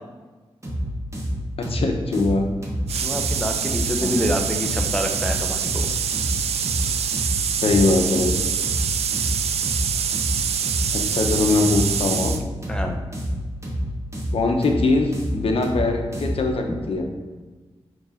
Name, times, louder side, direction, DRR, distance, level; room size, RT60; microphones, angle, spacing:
sound 1, 0.6-16.5, equal, 30° right, 1.7 m, -28 dB
voice 1, 1.6-2.5 4.0-4.4 7.6-8.4 10.9-12.4 14.3-17.1, left 3 dB, 70° left, 3 dB, 0.9 m, -22 dB
sound 2, 2.9-12.4, right 8 dB, 85° right, 0.4 m, -25 dB
voice 2, 3.0-6.0 12.7-13.0, equal, 10° left, 3 dB, 0.9 m, -27 dB
5.2 x 3.8 x 5.0 m, 1.3 s
cardioid pair, 65°, 10 cm